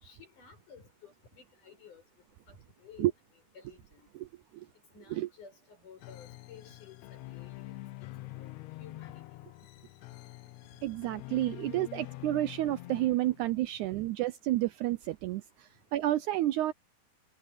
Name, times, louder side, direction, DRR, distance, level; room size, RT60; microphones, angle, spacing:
voice 1, 0.0-2.0 2.5-3.1 3.5-4.1 4.9-7.8 8.2-8.5 8.8-9.4, left 6 dB, 65° left, 8.4 m, -54 dB
sound 1, 6.0-13.7, left 19 dB, 85° left, 1.6 m, -46 dB
voice 2, 10.8-16.7, right 15 dB, 80° right, 1.8 m, -30 dB
omnidirectional pair, 3.9 m